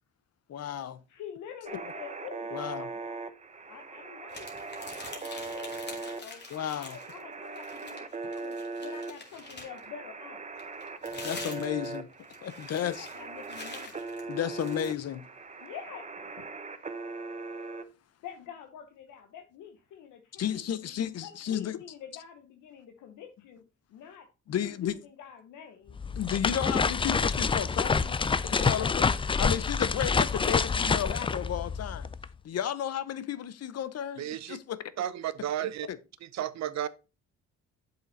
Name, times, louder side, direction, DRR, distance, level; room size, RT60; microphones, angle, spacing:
voice 1, 0.5-1.0 2.5-2.9 6.5-7.0 11.1-12.1 12.4-13.1 14.3-15.3 20.4-21.8 24.5-25.0 26.2-29.0 29.4-32.1 32.4-34.9 35.6-36.0, left 10 dB, 55° left, 0.8 m, -33 dB
voice 2, 1.1-3.2 3.7-6.4 6.7-10.4 12.8-14.3 15.6-16.4 18.2-20.9 21.2-23.6 23.9-26.0 28.5-29.0, left 8 dB, 85° left, 1.0 m, -47 dB
sound 1, 1.6-17.8, right 3 dB, 25° right, 0.8 m, -40 dB
sound 2, 4.3-7.2 7.5-9.9 10.6-15.0, left 3 dB, 35° left, 2.4 m, -45 dB
sound 3, 25.9-32.3, left 5 dB, 20° left, 0.4 m, -27 dB
voice 3, 34.2-34.6 35.0-35.9 36.3-36.9, right 11 dB, 65° right, 0.7 m, -32 dB
7.4 x 5.8 x 4.0 m
cardioid pair, 90°, 30 cm